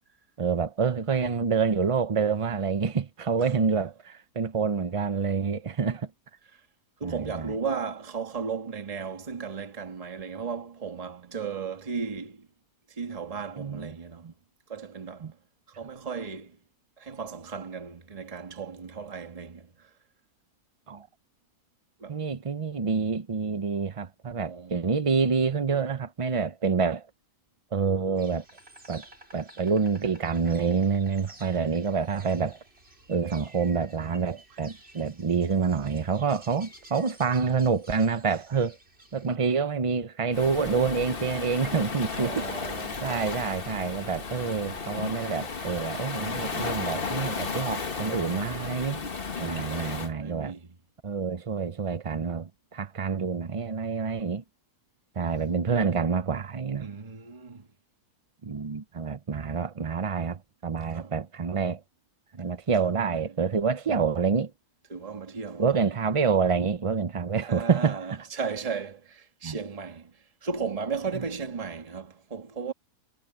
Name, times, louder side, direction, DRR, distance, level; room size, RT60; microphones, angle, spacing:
voice 1, 0.4-6.1 7.0-7.6 13.6-13.9 14.2-14.3 15.2-15.3 20.9-21.1 22.1-27.1 27.7-28.4 28.9-29.0 29.3-32.6 33.1-38.8 39.1-42.5 43.0-49.0 49.4-50.5 51.0-54.4 55.2-56.9 58.4-61.8 62.3-64.5 65.6-68.2 69.4-69.6 71.1-71.2, right 5 dB, 55° right, 0.3 m, -27 dB
voice 2, 7.0-12.5 13.0-14.3 14.7-15.3 15.8-16.6 17.0-19.7 22.0-22.2 24.4-24.8 42.2-43.3 49.7-50.7 56.8-57.7 60.9-61.1 62.9-63.2 64.9-65.7 67.5-70.1 70.4-72.7, right 5 dB, 25° right, 1.5 m, -35 dB
Insect, 28.2-39.4, right 2 dB, 40° right, 6.3 m, -52 dB
Waves surf, 40.3-50.1, left 4 dB, 40° left, 1.6 m, -34 dB
omnidirectional pair, 1.6 m